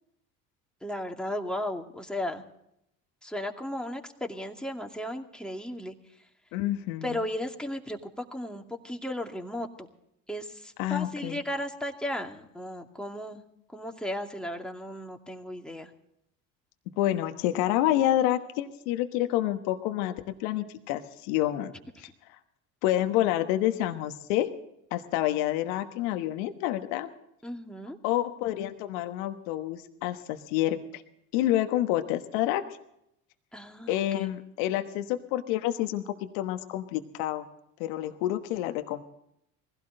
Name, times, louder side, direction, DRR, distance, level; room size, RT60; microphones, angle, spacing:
voice 1, 0.8-2.4 3.2-6.0 7.0-9.9 10.3-13.4 13.7-15.9 27.4-28.0 33.5-34.3, left 1 dB, ahead, 2 dB, 2.4 m, -35 dB
voice 2, 6.5-7.1 10.8-11.4 17.0-21.7 22.0-22.1 22.8-24.5 24.9-27.1 28.0-31.0 31.3-32.6 33.9-37.4 37.8-39.0, left 13 dB, 75° left, 7 dB, 1.3 m, -28 dB
21.0 x 16.0 x 3.9 m, 0.78 s
hypercardioid pair, 70°, 41 cm